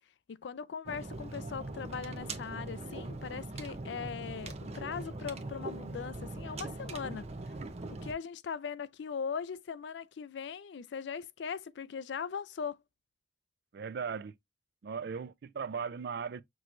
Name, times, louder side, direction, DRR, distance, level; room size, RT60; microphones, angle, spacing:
voice 1, 0.3-7.3 7.9-12.8, left 6 dB, 80° left, 0.4 m, -40 dB
sound 1, 0.9-8.1, right 2 dB, 40° right, 0.7 m, -41 dB
voice 2, 13.7-14.3 14.8-16.4, right 6 dB, 65° right, 0.4 m, -37 dB
6.0 x 3.1 x 2.5 m
head